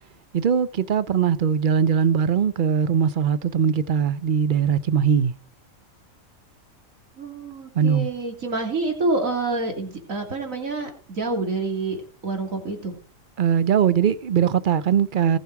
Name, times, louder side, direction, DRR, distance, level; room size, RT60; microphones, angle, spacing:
voice 1, 0.3-5.3 7.7-8.1 13.4-15.4, right 7 dB, 50° right, 0.7 m, -20 dB
voice 2, 7.2-13.0, right 3 dB, 75° right, 3.3 m, -27 dB
19.0 x 7.2 x 4.7 m
omnidirectional pair, 1.4 m